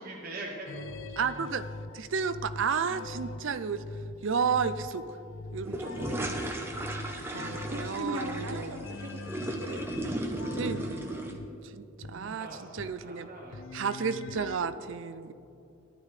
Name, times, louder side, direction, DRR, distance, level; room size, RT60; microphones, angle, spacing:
voice 1, 0.0-1.4 12.2-13.6 14.3-14.4, right 2 dB, 40° right, -2 dB, 1.0 m, -44 dB
sound 1, 0.7-11.5 12.0-12.1 12.8-12.9 13.2-14.6, left 2 dB, 60° left, 0.5 m, -42 dB
voice 2, 1.2-1.6 1.9-3.8 4.2-5.0 5.5-6.3 7.3-8.8 10.5-11.2 11.6-13.3 13.7-15.3, right 6 dB, 60° right, 12 dB, 0.4 m, -32 dB
sound 2, 5.6-11.3, right 1 dB, 10° right, 0.8 m, -35 dB
voice 3, 5.7-6.3 7.4-9.8 12.0-12.3, right 1 dB, 80° right, 4 dB, 1.1 m, -40 dB
15.5 x 11.0 x 3.3 m, 2.7 s
head